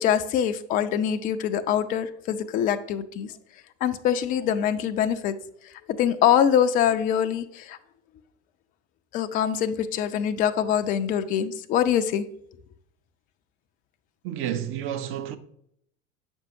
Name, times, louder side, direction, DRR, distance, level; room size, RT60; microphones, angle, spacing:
voice 1, 0.0-3.3 3.8-5.3 5.6-7.8 9.1-12.3, left 9 dB, 25° left, 0.3 m, -24 dB
voice 2, 14.2-15.4, right 10 dB, 35° right, 0.5 m, -30 dB
7.3 x 5.3 x 2.7 m
figure-of-eight pair, 70°, 37 cm